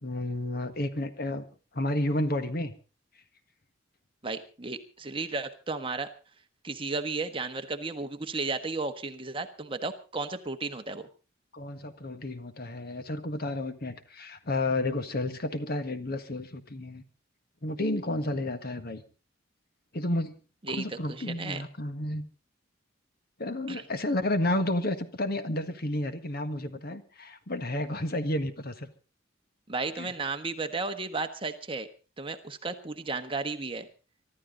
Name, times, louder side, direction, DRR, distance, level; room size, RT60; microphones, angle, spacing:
voice 1, 0.0-1.4 1.7-2.7 11.5-17.0 17.6-19.0 19.9-20.4 20.7-22.3 23.4-28.9 30.0-30.1, left 1 dB, 50° left, 10 dB, 1.6 m, -31 dB
voice 2, 4.2-6.1 6.6-11.1 20.7-21.6 23.7-23.8 29.7-31.9 32.2-33.9, right 3 dB, 25° right, 7 dB, 1.3 m, -34 dB
24.0 x 12.5 x 3.9 m, 0.34 s
head